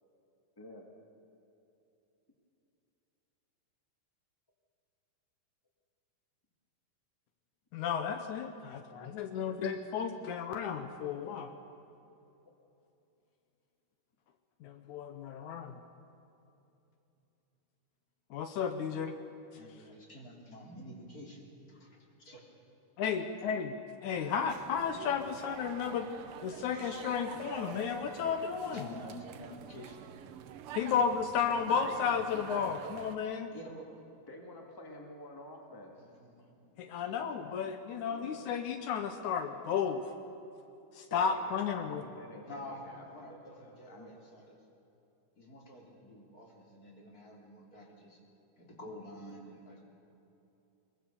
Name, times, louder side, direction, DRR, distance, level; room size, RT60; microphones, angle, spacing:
voice 1, 7.7-11.5 14.6-15.8 18.3-19.2 23.0-23.8 24.0-26.1 26.4-28.9 30.8-33.5 36.8-40.0 40.9-42.0, left 7 dB, 75° left, 7 dB, 2.3 m, -33 dB
voice 2, 19.6-22.4 28.7-30.6 33.5-34.0 36.0-37.0 42.4-44.6 45.4-48.2 48.6-49.9, left 1 dB, 30° left, -1 dB, 3.5 m, -49 dB
sound 1, 24.3-33.2, right 9 dB, 80° right, 1.2 m, -46 dB
voice 3, 34.3-36.1 38.1-38.4 41.1-44.1, left 1 dB, 10° left, 1 dB, 2.0 m, -50 dB
22.0 x 22.0 x 7.0 m, 2.8 s
omnidirectional pair, 3.5 m